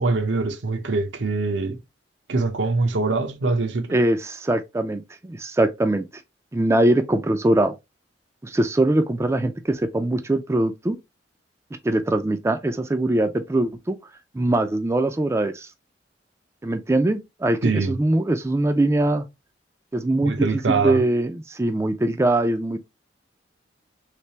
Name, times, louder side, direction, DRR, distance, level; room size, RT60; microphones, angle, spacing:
voice 1, 0.0-1.8 2.3-4.0 17.6-18.0 20.2-21.0, right 3 dB, 80° right, 0.7 m, -23 dB
voice 2, 3.9-6.0 6.5-7.8 8.4-11.0 11.8-14.0 14.3-15.7 16.6-19.2 19.9-22.8, right 1 dB, 15° right, 0.3 m, -22 dB
3.3 x 3.2 x 2.8 m
head